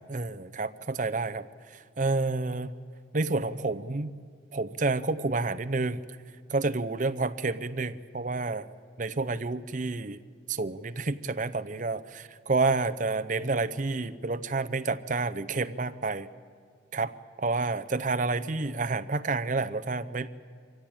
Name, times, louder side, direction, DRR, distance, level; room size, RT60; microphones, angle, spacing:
voice 1, 0.0-1.5 1.7-2.7 3.1-4.1 4.5-6.0 6.5-10.2 10.5-16.3 16.9-17.1 17.4-20.3, right 3 dB, 40° right, 13 dB, 0.6 m, -29 dB
23.5 x 16.0 x 8.8 m, 2.1 s
head